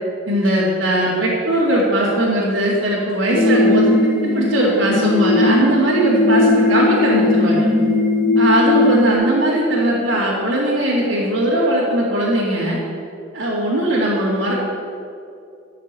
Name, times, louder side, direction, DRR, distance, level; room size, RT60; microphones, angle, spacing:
voice 1, 0.3-3.9 4.2-7.7 8.4-12.8 13.3-14.5, right 1 dB, 85° right, -9 dB, 2.4 m, -19 dB
sound 1, 3.3-9.1, left 2 dB, 45° left, 1.7 m, -17 dB
13.0 x 6.6 x 8.2 m, 2.5 s
head